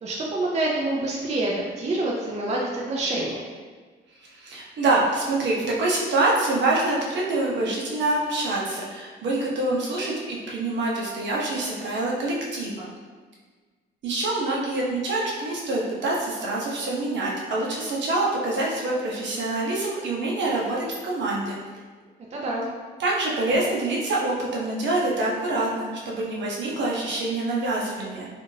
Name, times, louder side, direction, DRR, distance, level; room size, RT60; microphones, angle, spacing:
voice 1, 0.0-3.4 22.3-22.7, right 2 dB, 35° right, -3 dB, 0.5 m, -27 dB
voice 2, 4.2-12.9 14.0-21.5 23.0-28.3, right 2 dB, 65° right, -4 dB, 0.8 m, -26 dB
3.5 x 2.5 x 2.7 m, 1.4 s
cardioid pair, 90°, 20 cm